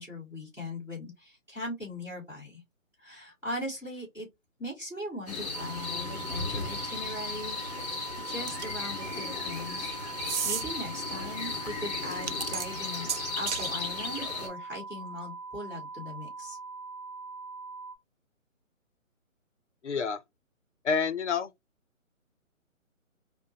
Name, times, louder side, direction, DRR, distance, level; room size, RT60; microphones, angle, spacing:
voice 1, 0.0-2.6 3.0-4.3 4.6-9.9 10.2-16.6, left 1 dB, 5° right, 1.6 m, -40 dB
sound 1, 5.3-14.5, left 3 dB, 30° left, 1.6 m, -36 dB
sound 2, 5.5-17.9, right 4 dB, 10° left, 0.6 m, -42 dB
sound 3, 8.5-8.9 10.2-10.6 12.1-13.7, right 7 dB, 60° right, 0.5 m, -33 dB
voice 2, 19.8-20.2 20.8-21.5, left 5 dB, 60° left, 0.7 m, -28 dB
4.7 x 2.2 x 2.7 m
figure-of-eight pair, 145°, 41 cm